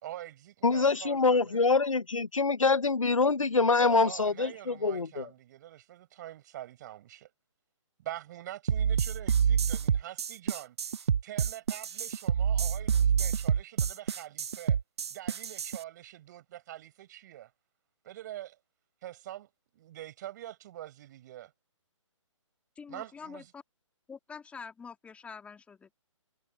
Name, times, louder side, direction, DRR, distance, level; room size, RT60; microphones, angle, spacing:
voice 1, 0.0-1.6 3.8-7.3 8.0-14.8 15.1-17.5 18.0-18.6 19.0-21.5 22.9-23.5, right 13 dB, 35° right, 5.3 m, -45 dB
voice 2, 0.6-5.3, left 4 dB, 80° left, 0.9 m, -25 dB
sound 1, 8.7-15.8, right 7 dB, 55° right, 0.5 m, -27 dB
voice 3, 22.7-23.6 24.1-25.9, left 5 dB, 5° left, 3.3 m, -46 dB
figure-of-eight pair, 135°, 16 cm